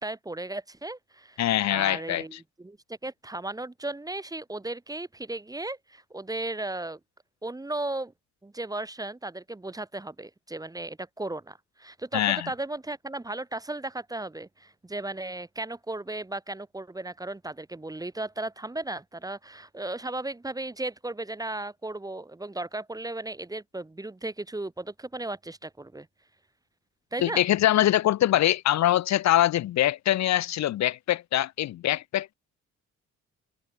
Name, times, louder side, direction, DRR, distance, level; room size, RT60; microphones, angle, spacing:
voice 1, 0.0-7.0 7.4-8.1 8.4-26.1 27.1-27.5, right 2 dB, 10° right, 1.1 m, -35 dB
voice 2, 1.4-2.2 12.1-12.5 27.2-32.3, left 13 dB, 65° left, 0.8 m, -23 dB
cardioid pair, 90°, 30 cm